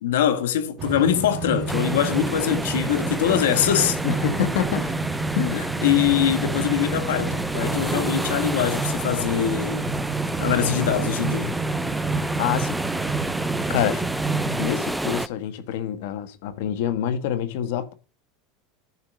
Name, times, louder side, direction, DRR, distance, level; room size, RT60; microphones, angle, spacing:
voice 1, 0.0-4.0 5.5-9.9 10.4-11.5, left 10 dB, 90° left, 1.5 m, -23 dB
sound 1, 0.8-14.7, right 5 dB, 25° right, 2.4 m, -29 dB
sound 2, 1.7-15.3, right 1 dB, 5° right, 0.5 m, -29 dB
voice 2, 4.0-5.0 5.3-5.6 12.4-12.8 13.7-14.1 14.6-17.9, left 9 dB, 70° left, 1.4 m, -26 dB
11.0 x 4.5 x 6.3 m
supercardioid pair, 130°, 0 cm